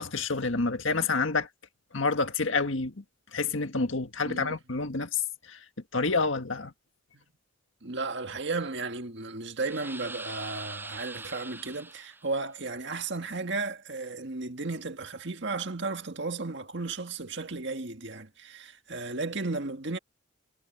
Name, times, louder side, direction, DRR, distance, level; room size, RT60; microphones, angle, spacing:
voice 1, 0.0-1.5 1.9-3.0 3.3-5.6 5.9-6.7, left 4 dB, 70° left, 1.8 m, -28 dB
voice 2, 4.2-4.6 7.1-7.2 7.8-20.0, right 3 dB, 60° right, 1.8 m, -34 dB
sound 1, 9.6-12.4, right 2 dB, 10° right, 6.9 m, -42 dB
head